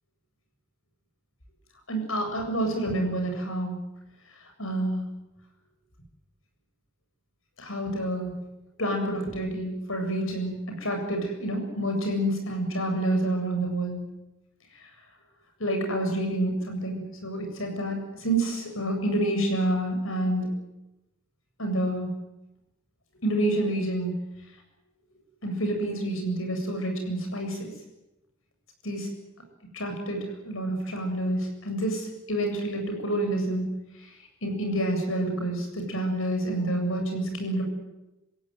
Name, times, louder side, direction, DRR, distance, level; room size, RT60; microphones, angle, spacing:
voice 1, 1.9-3.8 4.6-5.1 7.6-8.3 8.8-14.0 15.6-20.5 21.6-22.1 23.2-24.2 25.4-27.7 28.8-29.1 29.7-33.8 34.4-37.6, right 1 dB, 80° left, 3 dB, 7.8 m, -28 dB
26.0 x 17.0 x 9.4 m, 0.96 s
head